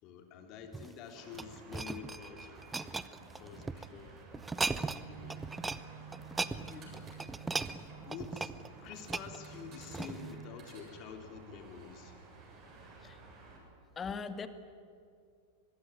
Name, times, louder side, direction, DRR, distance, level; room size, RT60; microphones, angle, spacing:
voice 1, 0.0-2.8 3.3-4.2 4.8-5.5 6.7-7.1 8.0-8.5 8.8-12.2, left 7 dB, 40° left, 5 dB, 3.2 m, -48 dB
sound 1, 0.6-3.9 4.3-5.0 5.3-5.8 6.1-10.4 11.0-11.1, right 4 dB, 10° right, 0.8 m, -38 dB
sound 2, 1.1-13.6, right 3 dB, 35° right, 7.8 m, -54 dB
sound 3, 4.9-10.5, right 7 dB, 65° right, 3.1 m, -52 dB
voice 2, 6.5-7.0 13.0-13.2 14.0-14.5, left 5 dB, 20° left, 10 dB, 1.8 m, -42 dB
24.5 x 21.0 x 9.7 m, 2.2 s
figure-of-eight pair, 90°, 0 cm